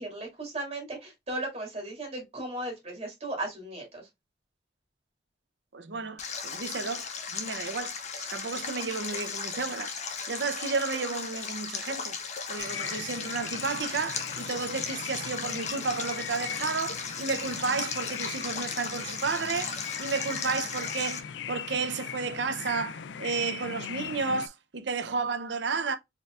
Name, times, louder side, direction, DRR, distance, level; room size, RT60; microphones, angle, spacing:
voice 1, 0.0-4.1, right 2 dB, 35° right, 2.1 m, -36 dB
voice 2, 5.7-7.1 7.3-10.0 10.3-12.2 12.5-26.0, right 4 dB, 80° right, 0.7 m, -32 dB
Stream, 6.2-21.2, left 5 dB, 40° left, 0.9 m, -36 dB
sound 1, 12.6-24.5, left 8 dB, 85° left, 0.4 m, -40 dB
4.6 x 3.4 x 2.4 m
head